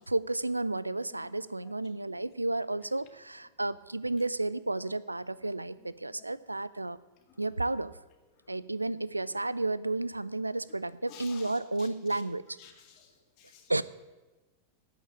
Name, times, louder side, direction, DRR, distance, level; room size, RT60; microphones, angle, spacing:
voice 1, 0.1-7.0 7.4-8.0 8.5-12.6 13.7-13.8, right 2 dB, 85° right, 17 dB, 0.4 m, -32 dB
voice 2, 11.1-12.2 12.6-13.7, left 8 dB, 45° left, 3 dB, 2.2 m, -53 dB
8.8 x 8.6 x 8.9 m, 1.1 s
figure-of-eight pair, 90°, 0 cm